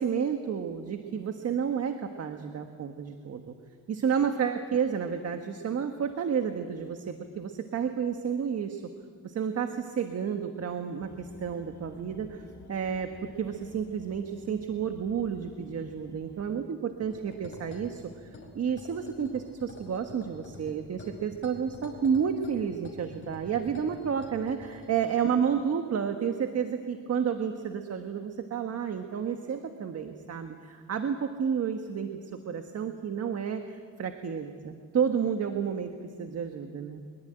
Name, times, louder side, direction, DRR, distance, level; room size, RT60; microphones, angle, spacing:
voice 1, 0.0-3.5 3.9-8.8 9.2-18.3 18.5-32.2 32.5-35.9 36.2-37.0, right 7 dB, 55° right, 6 dB, 1.5 m, -31 dB
sound 1, 11.0-16.6, left 5 dB, 65° left, 1.7 m, -51 dB
sound 2, 17.0-24.9, left 2 dB, 40° left, 5.2 m, -48 dB
23.5 x 22.0 x 9.0 m, 2.1 s
cardioid pair, 130°, 30 cm